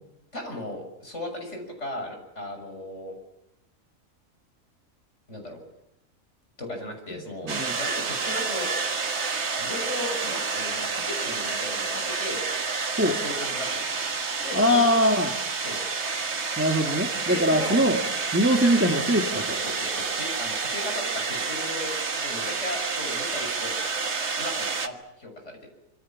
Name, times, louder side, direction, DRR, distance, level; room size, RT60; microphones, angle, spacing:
voice 1, 0.3-3.1 5.3-5.6 6.6-7.5 7.8-8.7 9.6-12.4 13.1-14.0 14.4-14.8 15.6-15.8 17.2-17.8 18.6-18.7 19.3-23.8 24.4-25.7, left 1 dB, 55° left, 4 dB, 6.9 m, -36 dB
voice 2, 7.4-7.7 13.0-13.2 14.5-15.3 16.6-18.0 18.3-19.6, equal, 10° right, 4 dB, 1.7 m, -22 dB
sound 1, 7.5-24.9, right 4 dB, 55° right, 1.8 m, -29 dB
26.0 x 25.5 x 7.4 m, 0.84 s
omnidirectional pair, 1.4 m